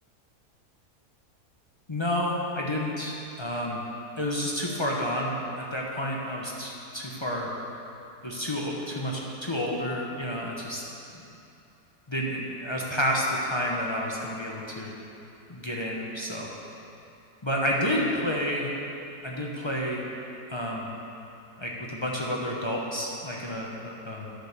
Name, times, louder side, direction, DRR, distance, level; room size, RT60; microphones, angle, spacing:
voice 1, 1.9-3.8 4.2-7.5 8.2-10.8 12.1-14.9 15.5-16.5 17.4-18.7 19.2-20.0 20.5-20.9 21.6-24.3, equal, 25° left, -3 dB, 0.6 m, -30 dB
10.0 x 5.3 x 6.7 m, 2.8 s
omnidirectional pair, 1.7 m